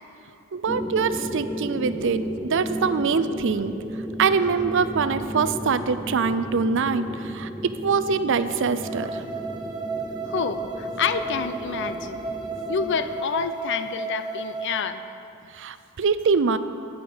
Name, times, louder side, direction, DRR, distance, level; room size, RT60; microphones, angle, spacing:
voice 1, 0.5-3.7 4.2-9.2 15.5-16.6, right 5 dB, 60° right, 12 dB, 0.5 m, -24 dB
sound 1, 0.7-13.2, equal, 5° right, 0.5 m, -34 dB
sound 2, 8.8-14.8, right 3 dB, 20° right, 0.9 m, -33 dB
voice 2, 10.3-12.2 12.7-15.0, left 6 dB, 55° left, 11 dB, 0.5 m, -28 dB
19.0 x 6.4 x 5.1 m, 2.5 s
head